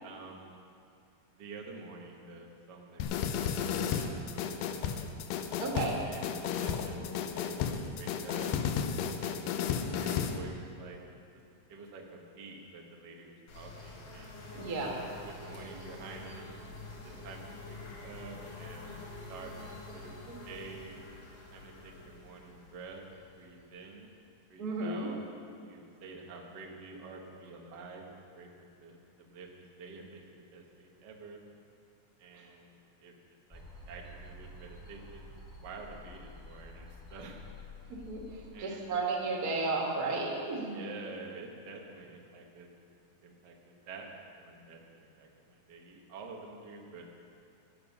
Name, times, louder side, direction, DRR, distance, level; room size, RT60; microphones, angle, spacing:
voice 1, 0.0-0.6 1.3-5.1 6.1-6.9 7.2-8.9 9.2-9.6 9.9-11.0 11.7-16.5 17.0-19.0 19.3-20.9 21.3-23.0 23.4-24.1 24.5-25.2 25.5-28.5 28.8-29.5 29.8-30.2 30.5-31.4 32.2-33.1 33.5-35.3 35.6-37.4 38.5-39.0 40.6-42.7 43.2-44.1 44.4-47.0, right 4 dB, 75° right, 0 dB, 0.9 m, -49 dB
sound 1, 3.0-10.4, left 7 dB, 75° left, 2.2 m, -33 dB
voice 2, 5.6-6.0 14.5-14.9 20.3-20.4 24.6-25.1 38.1-40.9, right 3 dB, 35° right, -2 dB, 1.7 m, -33 dB
sound 2, 13.5-24.1, left 2 dB, 55° left, 3.4 m, -47 dB
sound 3, 33.5-38.5, left 1 dB, 10° left, 1.8 m, -50 dB
16.5 x 9.2 x 5.5 m, 2.5 s
omnidirectional pair, 4.2 m